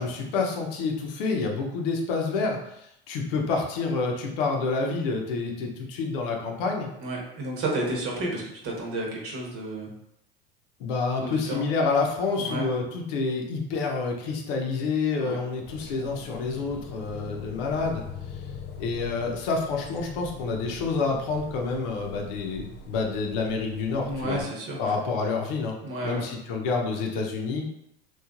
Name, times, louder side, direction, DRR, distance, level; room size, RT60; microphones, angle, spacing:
voice 1, 0.0-6.9 10.8-18.0 18.3-18.4 18.8-24.4 24.8-25.8 26.0-27.6, left 4 dB, 65° left, 1 dB, 0.7 m, -28 dB
voice 2, 7.0-9.9 11.2-11.7 12.4-12.7 15.1-15.4 24.1-24.9 25.8-26.2, right 2 dB, 45° right, -2 dB, 1.1 m, -31 dB
sound 1, 15.6-24.4, left 4 dB, 35° left, 0.4 m, -42 dB
3.1 x 2.3 x 2.4 m, 0.79 s
hypercardioid pair, 90°, 30 cm